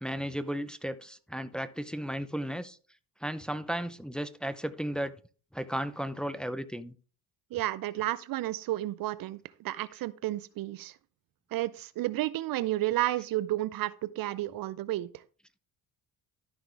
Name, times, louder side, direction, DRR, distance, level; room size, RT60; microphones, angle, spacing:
voice 1, 0.0-2.8 3.2-5.1 5.5-6.9, equal, ahead, 0.7 m, -34 dB
voice 2, 7.5-11.0 11.5-15.2, right 15 dB, 55° right, 0.5 m, -32 dB
12.5 x 5.8 x 3.4 m
hypercardioid pair, 65°, 42 cm